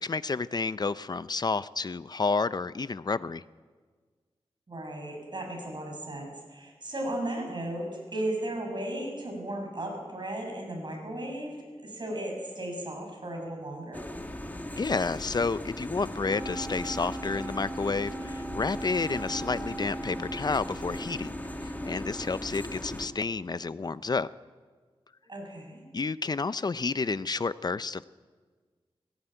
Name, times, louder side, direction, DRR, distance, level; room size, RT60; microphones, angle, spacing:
voice 1, 0.0-3.4 14.8-21.3 21.6-24.3 25.9-28.1, left 4 dB, 40° left, 16 dB, 0.5 m, -30 dB
voice 2, 4.7-11.6 11.8-14.1 25.3-25.8, right 1 dB, 50° right, 1 dB, 6.9 m, -35 dB
sound 1, 13.9-23.1, left 1 dB, 15° left, 1.8 m, -38 dB
Wind instrument woodwind instrument, 16.2-22.3, right 2 dB, 25° right, 2.3 m, -40 dB
18.5 x 17.5 x 9.0 m, 1.5 s
wide cardioid pair, 105°, 10 cm